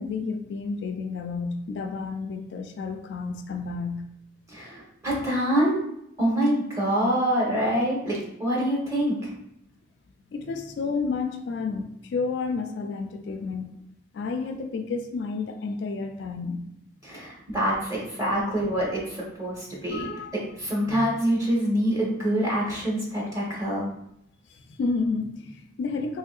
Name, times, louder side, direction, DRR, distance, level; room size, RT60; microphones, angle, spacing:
voice 1, 0.0-4.1 10.3-13.7 14.1-16.6 19.9-20.3 20.9-21.1 24.7-26.2, left 4 dB, 65° left, 6 dB, 0.3 m, -31 dB
voice 2, 4.5-5.8 6.2-9.3 17.0-20.1 20.6-23.8, equal, 15° right, -4 dB, 0.9 m, -25 dB
3.6 x 3.1 x 2.3 m, 0.77 s
head